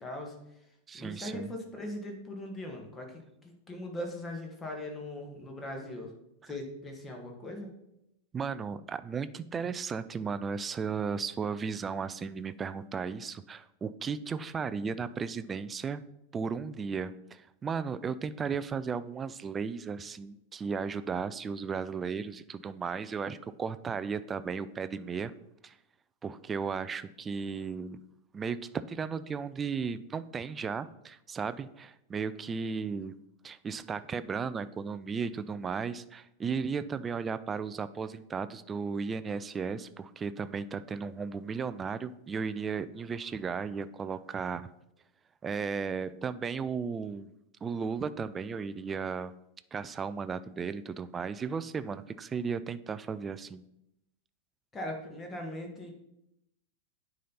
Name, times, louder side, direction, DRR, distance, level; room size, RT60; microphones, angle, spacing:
voice 1, 0.0-6.1 6.4-7.7 54.7-55.9, left 1 dB, 20° left, 2 dB, 1.6 m, -40 dB
voice 2, 0.9-1.5 8.3-16.0 16.3-25.3 25.6-25.8 26.2-28.0 28.3-33.1 33.4-44.7 45.4-47.3 47.6-49.3 49.7-53.6, right 5 dB, 20° right, 14 dB, 0.3 m, -35 dB
9.2 x 4.1 x 4.0 m, 0.83 s
figure-of-eight pair, 90°, 0 cm